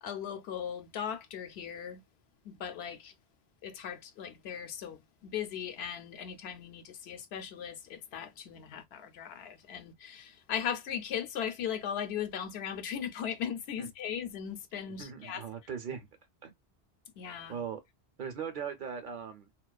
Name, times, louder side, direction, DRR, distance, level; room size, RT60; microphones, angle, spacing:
voice 1, 0.0-2.0 2.4-3.1 3.6-15.5 17.2-17.6, left 8 dB, 85° left, 0.8 m, -38 dB
voice 2, 15.0-16.1 16.4-16.5 17.5-17.8 18.2-19.5, right 7 dB, 60° right, 0.7 m, -39 dB
2.4 x 2.3 x 2.2 m
omnidirectional pair, 1.0 m